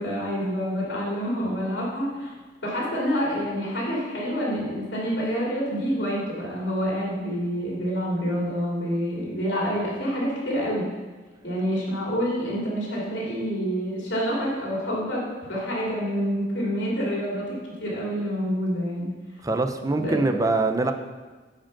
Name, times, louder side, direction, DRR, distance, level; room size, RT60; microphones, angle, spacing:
voice 1, 0.0-2.3 2.6-10.8 11.4-15.2 15.5-19.1 20.0-20.2, equal, 70° left, -5 dB, 2.9 m, -27 dB
voice 2, 19.4-20.9, right 2 dB, 20° right, 7 dB, 0.6 m, -23 dB
9.0 x 5.1 x 5.9 m, 1.3 s
head